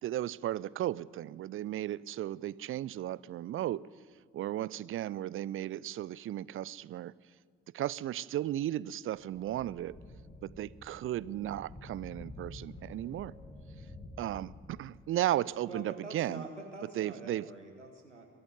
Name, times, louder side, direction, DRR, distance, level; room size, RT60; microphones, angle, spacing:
voice 1, 0.0-3.9 4.3-7.1 7.7-10.0 10.4-13.3 14.2-16.5 17.0-17.5, right 13 dB, 40° right, 0.5 m, -35 dB
sound 1, 9.1-15.2, left 1 dB, 15° left, 3.8 m, -49 dB
voice 2, 15.7-18.2, right 2 dB, 90° right, 1.6 m, -45 dB
22.5 x 13.5 x 9.5 m
figure-of-eight pair, 45°, 35 cm